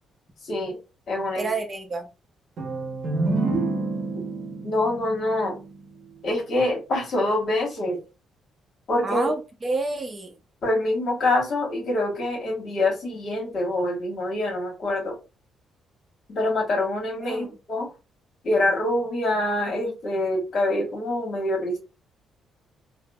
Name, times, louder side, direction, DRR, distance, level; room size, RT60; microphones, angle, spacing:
voice 1, 0.4-0.8 1.1-1.5 4.6-5.5 6.2-8.0 8.9-9.3 10.6-15.1 16.3-17.9 18.4-21.8, left 1 dB, 55° left, 1.3 m, -25 dB
voice 2, 1.4-2.1 9.0-10.3 17.2-17.5, right 3 dB, 30° right, 0.7 m, -29 dB
sound 1, 2.6-6.2, right 2 dB, 55° right, 0.9 m, -28 dB
3.4 x 2.0 x 2.3 m
cardioid pair, 90°, 0 cm